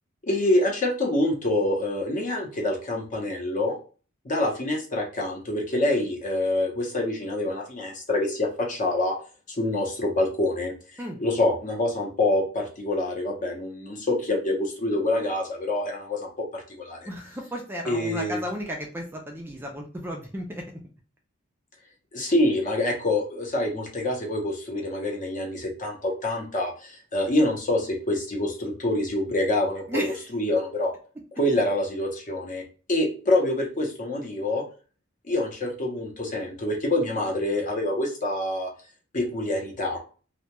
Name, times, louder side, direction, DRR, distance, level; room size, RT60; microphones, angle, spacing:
voice 1, 0.2-3.8 4.2-9.2 9.6-10.7 11.2-17.1 17.8-18.4 22.1-30.0 30.3-30.9 31.4-32.6 32.9-34.6 35.3-38.7 39.1-40.0, left 1 dB, 40° left, 1 dB, 0.7 m, -26 dB
voice 2, 17.1-20.6 29.9-30.2, equal, 10° right, 1 dB, 0.3 m, -33 dB
2.2 x 2.2 x 2.8 m, 0.37 s
head